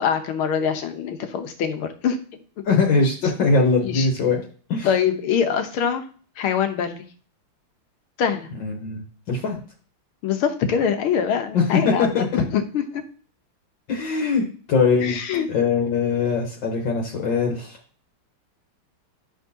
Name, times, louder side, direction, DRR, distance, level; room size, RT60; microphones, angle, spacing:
voice 1, 0.0-2.2 3.8-4.1 4.8-6.0 6.4-7.0 8.2-8.5 10.2-13.0 15.0-15.5, left 7 dB, 85° left, 7 dB, 1.8 m, -23 dB
voice 2, 2.7-4.9 8.6-9.6 11.5-12.4 13.9-15.2 15.5-17.8, left 4 dB, 65° left, 1 dB, 1.7 m, -22 dB
11.0 x 6.2 x 2.8 m, 0.42 s
omnidirectional pair, 2.3 m